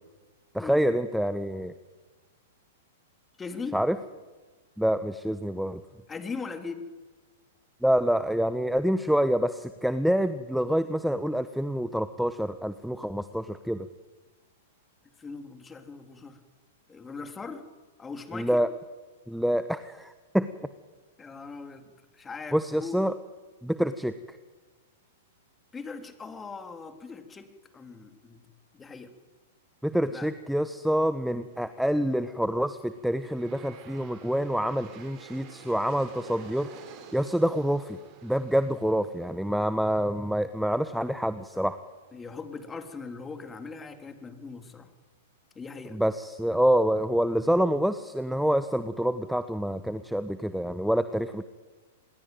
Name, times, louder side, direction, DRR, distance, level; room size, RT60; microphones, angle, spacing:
voice 1, 0.5-1.8 3.7-4.0 4.8-5.8 7.8-13.9 18.3-18.7 19.3-20.5 22.5-23.1 23.6-24.4 29.8-36.7 37.1-41.8 45.9-51.4, equal, ahead, 12 dB, 1.1 m, -27 dB
voice 2, 3.4-3.8 6.1-6.9 15.2-16.4 16.9-17.7 18.0-18.7 21.2-23.0 25.7-28.4 28.7-29.1 30.1-30.3 42.1-44.9 45.5-46.0, left 4 dB, 15° left, 8 dB, 3.5 m, -40 dB
Aircraft, 32.3-43.4, right 7 dB, 40° right, 6.8 m, -52 dB
27.0 x 21.0 x 9.2 m, 1.3 s
hypercardioid pair, 105°, 0 cm